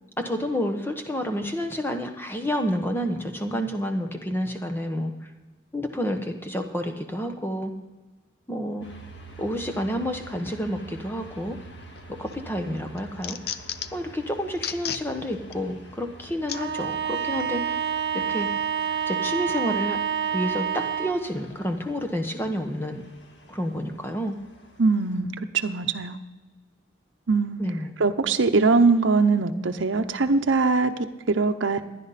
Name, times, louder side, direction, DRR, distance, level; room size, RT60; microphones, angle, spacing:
voice 1, 0.2-5.3 5.7-7.7 8.5-8.9 9.4-11.6 12.1-13.4 13.9-17.8 18.1-18.5 19.1-20.0 20.3-23.0 23.5-24.4 27.6-27.9, equal, 10° left, 5 dB, 1.0 m, -29 dB
sound 1, 8.8-25.2, right 2 dB, 70° left, 1.9 m, -47 dB
sound 2, 12.0-12.4 12.8-14.1 14.5-15.0 15.5-15.6 16.5-16.6 17.4-17.5, left 9 dB, 55° left, 0.5 m, -33 dB
Bowed string instrument, 16.5-21.3, right 8 dB, 60° right, 1.1 m, -28 dB
voice 2, 24.8-26.2 27.3-27.6 28.0-31.8, right 4 dB, 85° right, 7 dB, 0.7 m, -22 dB
16.0 x 11.0 x 4.1 m, 1.2 s
head